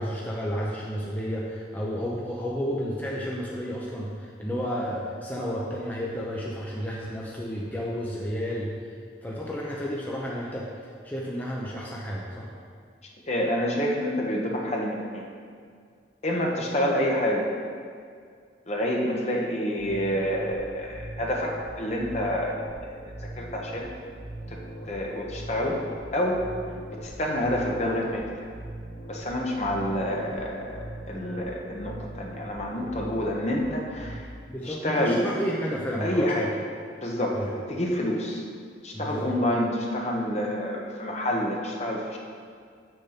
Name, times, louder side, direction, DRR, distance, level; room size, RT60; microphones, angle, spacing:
voice 1, 0.0-8.9 9.2-10.7 11.0-12.5 29.8-29.9 34.5-36.5 37.3-37.5 38.9-39.3, equal, 10° left, -4 dB, 0.8 m, -31 dB
voice 2, 13.3-15.3 16.2-17.5 18.7-22.6 22.8-23.0 23.4-23.9 24.5-24.6 24.9-25.8 26.1-26.4 26.9-28.4 29.1-34.3 34.6-35.2 36.0-36.5 37.0-38.4 38.8-42.2, equal, 35° left, -1 dB, 1.1 m, -28 dB
sound 1, 19.8-34.2, right 1 dB, 75° left, 1.5 m, -41 dB
7.3 x 6.6 x 5.9 m, 2.1 s
head